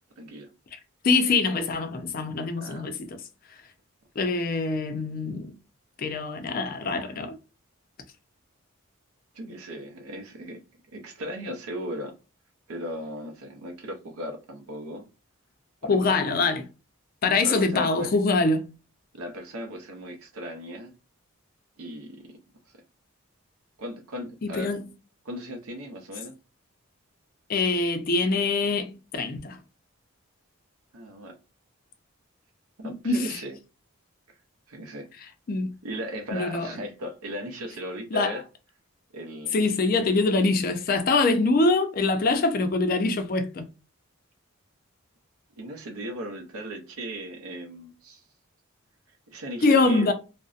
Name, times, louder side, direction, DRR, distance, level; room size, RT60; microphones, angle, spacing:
voice 1, 0.2-0.5 2.6-2.9 9.3-10.6 10.9-12.1 12.7-15.1 15.8-16.5 17.4-18.1 19.1-20.9 21.8-22.3 23.8-24.8 25.2-26.3 30.9-31.4 32.8-33.6 34.7-35.1 35.8-38.4 39.1-39.5 45.6-48.2 49.3-50.1, equal, 80° right, 0.6 m, -37 dB
voice 2, 1.0-3.2 4.2-5.5 6.0-7.3 15.9-16.6 17.2-18.7 24.4-24.9 27.5-29.6 32.8-33.4 35.5-35.7 36.3-36.7 38.1-38.4 39.5-43.6 49.6-50.1, left 3 dB, 40° left, 0.3 m, -24 dB
2.6 x 2.0 x 2.3 m
head